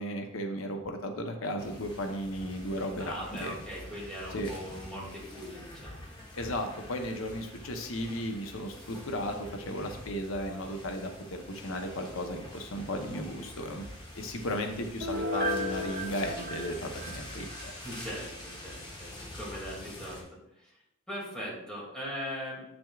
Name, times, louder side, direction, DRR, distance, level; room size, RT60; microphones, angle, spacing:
voice 1, 0.0-3.6 4.3-4.5 6.3-13.9 14.1-17.7, equal, 80° left, 4 dB, 0.9 m, -35 dB
sound 1, 1.6-20.2, left 1 dB, 20° left, 1.3 m, -46 dB
voice 2, 3.0-6.0 17.8-20.7 21.1-22.7, equal, 5° left, -5 dB, 2.4 m, -40 dB
Piano, 15.0-17.7 18.1-18.2, left 1 dB, 60° right, 2.4 m, -34 dB
8.6 x 6.1 x 2.4 m, 0.80 s
head